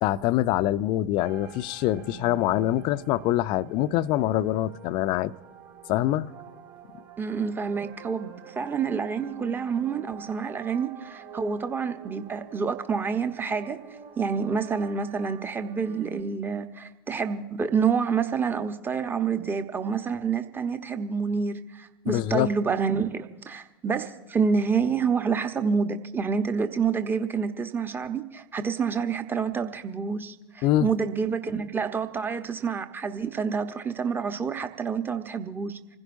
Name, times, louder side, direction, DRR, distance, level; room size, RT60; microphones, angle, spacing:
voice 1, 0.0-5.3 5.9-6.3 22.1-22.5 30.6-30.9, left 14 dB, 40° left, 0.5 m, -24 dB
sound 1, 1.2-16.2, right 7 dB, 40° right, 2.7 m, -47 dB
voice 2, 7.2-13.8 14.2-35.8, right 5 dB, 15° right, 1.1 m, -28 dB
27.0 x 15.5 x 2.7 m
figure-of-eight pair, 85°, 12 cm